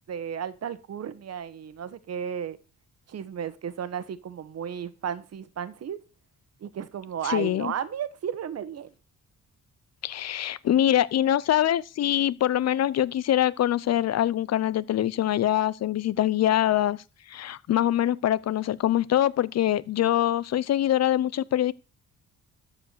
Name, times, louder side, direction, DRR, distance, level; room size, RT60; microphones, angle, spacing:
voice 1, 0.1-2.6 3.1-6.0 6.6-8.9, right 8 dB, 55° right, 1.4 m, -34 dB
voice 2, 7.2-7.7 10.0-17.0 17.3-21.7, left 12 dB, 60° left, 0.6 m, -24 dB
13.0 x 4.8 x 6.7 m
cardioid pair, 90°, 30 cm